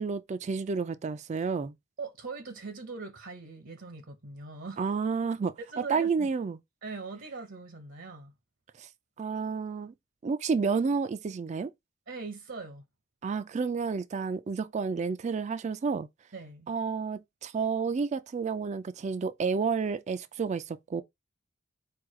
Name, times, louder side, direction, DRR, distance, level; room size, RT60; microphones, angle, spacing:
voice 1, 0.0-1.7 4.8-5.5 5.9-6.6 8.8-8.9 9.2-9.9 10.2-11.7 13.2-16.1 16.7-21.0, right 5 dB, 35° right, 0.3 m, -30 dB
voice 2, 2.0-4.9 5.7-6.3 6.8-8.3 12.1-12.8 16.3-16.7, right 4 dB, 70° right, 0.9 m, -41 dB
4.7 x 2.3 x 4.7 m
head